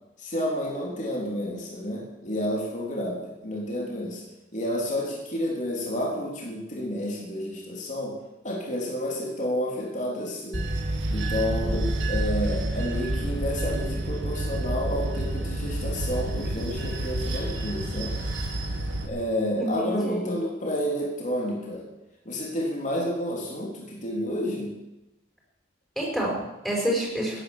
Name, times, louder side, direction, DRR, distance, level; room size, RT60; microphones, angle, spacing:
voice 1, 0.2-4.2 4.5-8.1 8.4-10.7 11.1-18.1 19.0-21.9 22.3-24.7, equal, 40° left, -2 dB, 3.8 m, -30 dB
Bell / Train, 10.5-19.1, right 1 dB, 80° right, 2.5 m, -29 dB
voice 2, 19.6-20.3 26.0-27.4, right 1 dB, 5° left, -3 dB, 5.4 m, -28 dB
17.5 x 10.5 x 7.4 m, 0.97 s
head